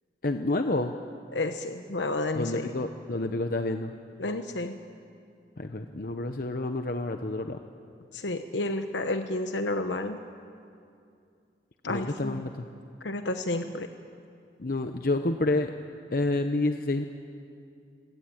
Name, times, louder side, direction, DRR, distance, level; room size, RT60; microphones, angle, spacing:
voice 1, 0.2-0.9 2.3-3.9 5.6-7.6 11.9-12.7 14.6-15.7 16.1-17.0, left 2 dB, 50° left, 6 dB, 0.9 m, -29 dB
voice 2, 1.3-2.7 4.2-4.8 8.1-10.2 11.8-12.4 13.0-13.9, left 2 dB, 85° left, 7 dB, 1.0 m, -31 dB
26.0 x 17.5 x 8.9 m, 2.4 s
head